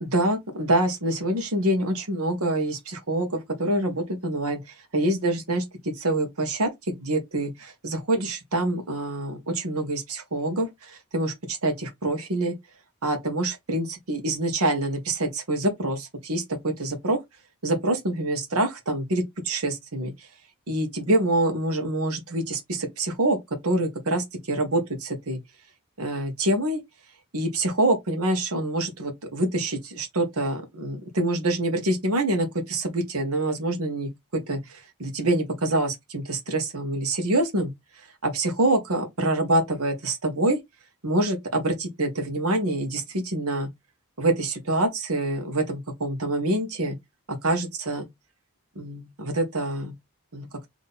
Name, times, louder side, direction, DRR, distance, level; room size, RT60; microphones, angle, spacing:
voice 1, 0.0-12.5 13.0-17.2 17.6-20.3 20.7-23.4 23.6-25.4 26.0-26.8 27.3-40.6 41.0-43.7 44.2-47.0 47.3-48.0 48.7-49.9 50.3-50.5, right 1 dB, 85° right, 1.4 m, -26 dB
3.8 x 3.1 x 4.0 m
head